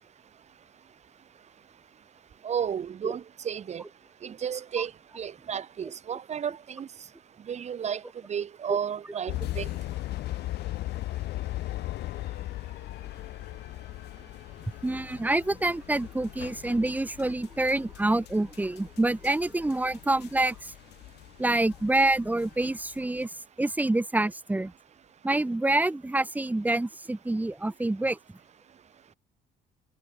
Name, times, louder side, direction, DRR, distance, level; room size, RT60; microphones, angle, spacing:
voice 1, 2.4-3.8 4.2-4.9 5.2-6.9 7.5-8.0 8.3-9.7, right 8 dB, 40° right, 1.5 m, -32 dB
sound 1, 9.3-23.2, left 16 dB, 80° left, 4.9 m, -38 dB
voice 2, 14.8-20.7 21.4-24.7 25.2-28.2, right 2 dB, 10° right, 1.5 m, -27 dB
cardioid pair, 110°, 17 cm